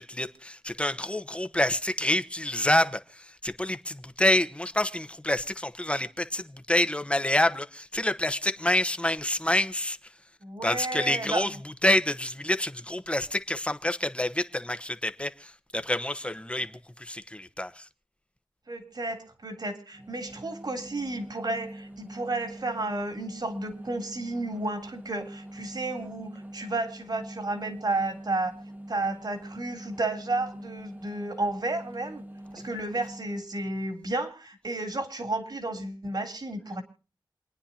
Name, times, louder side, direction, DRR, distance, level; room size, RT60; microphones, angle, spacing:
voice 1, 0.0-10.0 10.6-11.5 11.8-17.9, left 1 dB, 15° left, 1.1 m, -27 dB
voice 2, 10.4-11.5 18.7-28.5 28.9-32.2 32.5-36.8, right 2 dB, 55° right, 3.3 m, -32 dB
sound 1, 19.9-33.5, right 1 dB, 20° right, 1.5 m, -44 dB
28.0 x 9.9 x 2.8 m
wide cardioid pair, 60°, 8 cm